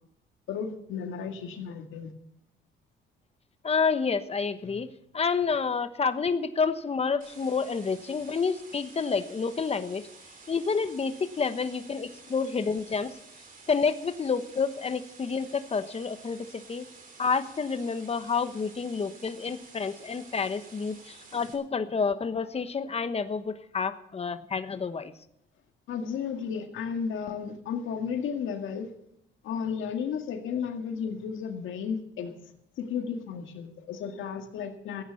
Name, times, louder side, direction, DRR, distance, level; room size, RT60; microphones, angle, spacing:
voice 1, 0.5-2.1 21.3-21.4 25.9-28.9 29.4-32.3 32.8-35.0, left 6 dB, 80° left, 5 dB, 2.0 m, -33 dB
voice 2, 3.6-4.9 5.1-10.1 10.5-13.1 13.7-16.9 17.2-25.1, left 5 dB, 30° left, 11 dB, 1.1 m, -29 dB
sound 1, 7.2-21.5, right 4 dB, 45° right, 3.4 m, -51 dB
15.5 x 9.4 x 7.0 m, 0.76 s
cardioid pair, 90°, 20 cm